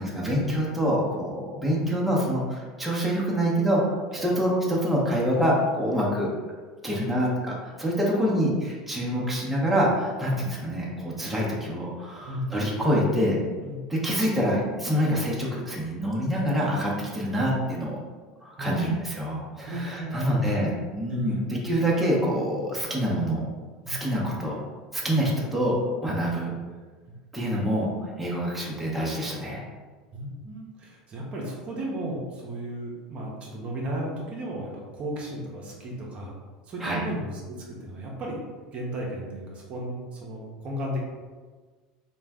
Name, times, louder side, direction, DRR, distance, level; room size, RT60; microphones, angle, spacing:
voice 1, 0.0-3.8 4.2-6.3 6.8-13.4 14.0-18.0 18.4-21.4 21.6-23.5 23.9-24.6 24.9-26.5 27.3-29.7 36.8-37.0, equal, 5° right, -5 dB, 0.8 m, -26 dB
voice 2, 6.8-7.2 8.1-8.4 9.1-9.5 12.2-12.5 13.6-13.8 17.2-17.3 18.6-19.1 19.6-20.7 21.1-21.4 23.8-24.0 25.0-25.1 30.1-36.3 36.6-41.0, equal, 40° right, -3 dB, 0.7 m, -35 dB
2.4 x 2.2 x 3.4 m, 1.4 s
hypercardioid pair, 90°, 3 cm